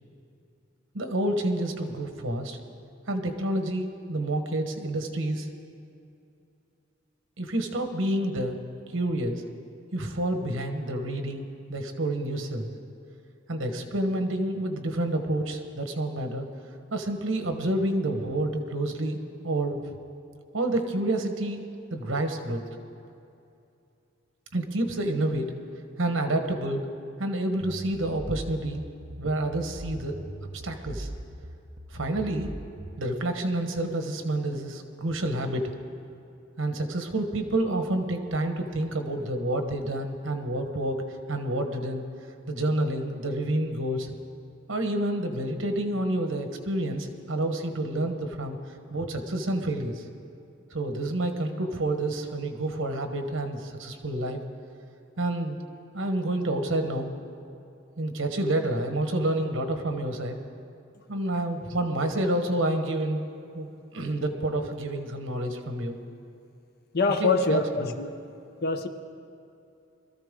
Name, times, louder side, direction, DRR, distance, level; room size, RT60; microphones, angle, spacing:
voice 1, 0.9-2.6 3.1-5.5 7.4-8.6 8.9-9.4 9.9-12.7 13.5-16.5 16.9-19.2 19.4-19.8 20.5-21.6 21.9-22.6 24.5-25.5 26.0-26.8 27.2-28.8 29.2-30.2 30.6-31.1 31.9-32.5 33.0-35.7 36.6-42.0 42.5-44.1 44.7-48.6 48.9-50.0 50.7-54.4 55.2-55.6 55.9-57.1 58.0-60.4 61.1-63.2 63.5-66.0 67.2-67.9, right 1 dB, 80° right, 1.3 m, -29 dB
sound 1, 27.6-33.0, right 1 dB, 35° right, 0.8 m, -40 dB
voice 2, 66.9-68.2 68.6-68.9, left 3 dB, 50° left, 0.8 m, -25 dB
21.5 x 13.5 x 3.7 m
head